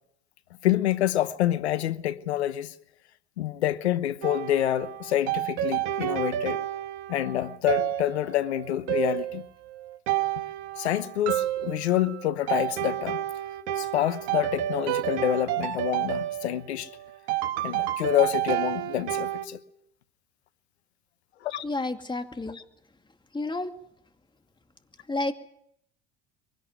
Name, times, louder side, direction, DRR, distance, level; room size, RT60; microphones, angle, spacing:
voice 1, 0.6-2.7 3.4-6.6 7.1-9.4 10.8-13.2 13.8-16.9 17.6-19.6 21.4-21.6, left 12 dB, 90° left, 1.1 m, -27 dB
sound 1, 4.2-19.5, right 13 dB, 70° right, 1.6 m, -30 dB
voice 2, 21.6-22.6 23.3-23.7 25.1-25.3, left 2 dB, 15° left, 2.4 m, -30 dB
23.5 x 18.0 x 9.1 m
hypercardioid pair, 75°, 32 cm